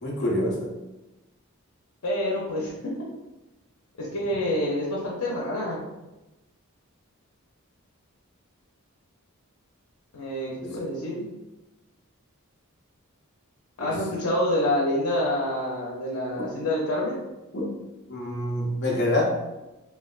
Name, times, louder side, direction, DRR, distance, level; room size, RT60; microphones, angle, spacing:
voice 1, 0.0-0.7 10.6-10.7 13.8-14.0 16.3-16.5 17.5-17.8 18.1-19.2, left 1 dB, 50° left, -2 dB, 0.7 m, -27 dB
voice 2, 2.0-2.9 4.0-5.8 10.1-11.3 13.8-17.2, left 1 dB, 90° left, -5 dB, 0.7 m, -27 dB
3.2 x 2.8 x 2.4 m, 1.0 s
head